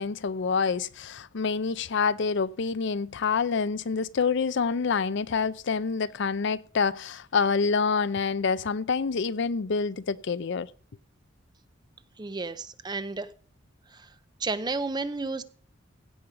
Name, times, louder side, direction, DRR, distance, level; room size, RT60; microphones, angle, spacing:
voice 1, 0.0-10.7, left 5 dB, 65° left, 0.5 m, -27 dB
voice 2, 12.2-13.3 13.9-14.1 14.4-15.4, right 3 dB, 20° right, 0.6 m, -32 dB
16.5 x 5.5 x 4.9 m
head